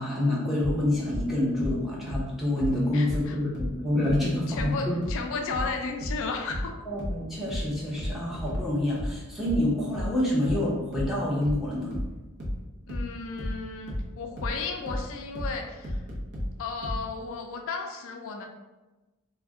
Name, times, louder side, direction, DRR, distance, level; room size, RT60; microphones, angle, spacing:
voice 1, 0.0-4.9 6.9-11.9, left 1 dB, ahead, -7 dB, 0.7 m, -27 dB
sound 1, 0.6-17.1, equal, 50° right, 0.7 m, -33 dB
voice 2, 2.9-3.4 4.5-6.8 12.9-16.0 16.6-18.5, left 4 dB, 60° left, 3 dB, 0.4 m, -34 dB
2.4 x 2.1 x 3.5 m, 1.1 s
head